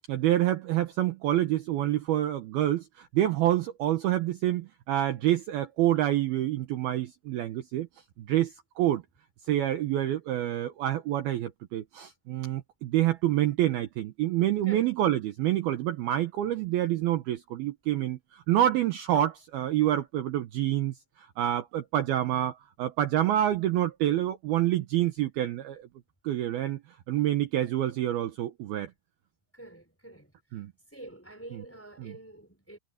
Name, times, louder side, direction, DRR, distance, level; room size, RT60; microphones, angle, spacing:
voice 1, 0.1-7.9 8.3-9.0 9.5-25.9 26.2-26.8 27.1-28.9 30.5-30.7 31.5-31.6 32.0-32.1, right 13 dB, 70° right, 2.6 m, -27 dB
voice 2, 29.5-30.3 30.9-32.8, right 1 dB, 5° left, 4.1 m, -46 dB
omnidirectional pair, 5.3 m